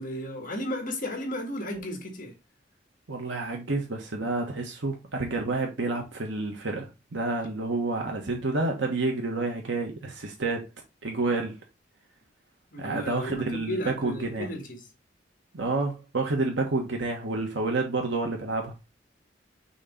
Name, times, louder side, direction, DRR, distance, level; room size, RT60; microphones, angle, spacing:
voice 1, 0.0-2.3 12.7-14.9, left 1 dB, 50° left, 1.9 m, -34 dB
voice 2, 3.1-10.7 11.0-11.6 12.8-14.5 15.5-18.7, right 3 dB, 85° right, 1.2 m, -29 dB
6.4 x 3.0 x 5.2 m
head